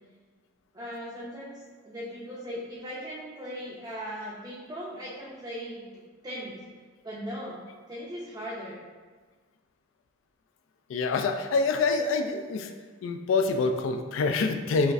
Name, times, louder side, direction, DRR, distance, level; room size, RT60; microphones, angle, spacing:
voice 1, 0.7-5.8 6.2-6.6 7.0-8.8, equal, 20° right, -7 dB, 0.4 m, -38 dB
voice 2, 10.9-12.7 13.0-14.9, left 4 dB, 75° left, 6 dB, 0.3 m, -26 dB
5.0 x 2.4 x 2.5 m, 1.4 s
head